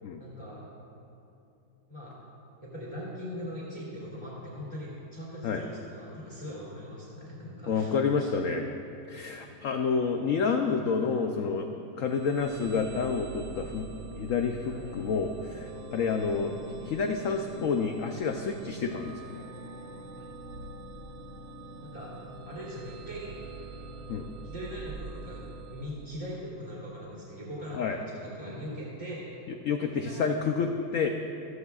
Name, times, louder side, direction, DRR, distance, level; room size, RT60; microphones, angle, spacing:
voice 1, 0.2-0.7 1.9-2.1 2.6-7.9 8.2-8.3 14.7-14.9 20.2-20.3 21.8-22.1 22.5-23.4 24.4-25.4 25.7-29.4 29.8-30.5, equal, 15° left, -8 dB, 2.5 m, -41 dB
voice 2, 7.7-8.7 9.1-13.9 14.2-16.5 16.8-19.4 24.1-24.3 27.7-28.0 29.6-31.1, left 5 dB, 80° left, 4 dB, 0.7 m, -29 dB
sound 1, 12.0-26.7, right 3 dB, 90° right, 1.5 m, -44 dB
14.5 x 14.0 x 2.4 m, 2.7 s
omnidirectional pair, 2.0 m